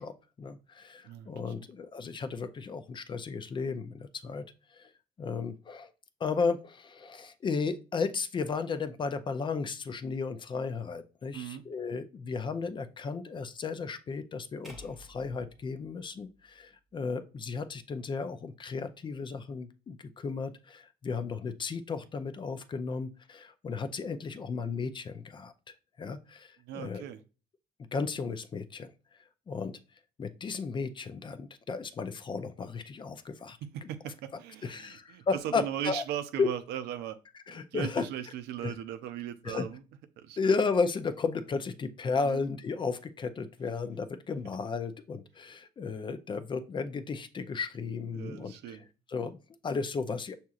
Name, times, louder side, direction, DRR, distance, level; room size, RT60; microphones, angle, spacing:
voice 1, 0.0-4.4 4.7-4.9 5.2-5.9 6.2-25.5 26.0-27.0 27.9-28.9 29.5-29.8 30.2-33.6 34.6-36.0 36.4-36.5 37.5-38.1 38.6-38.7 39.4-39.7 40.4-50.3, left 4 dB, 30° left, 0.4 m, -34 dB
voice 2, 1.0-1.5 11.3-11.6 26.6-27.2 33.6-37.2 37.5-39.8 40.2-40.5 42.2-42.4 48.1-48.9, right 10 dB, 80° right, 0.5 m, -38 dB
sound 1, 14.6-16.9, equal, ahead, 0.8 m, -54 dB
6.0 x 2.8 x 2.4 m
cardioid pair, 110°, 17 cm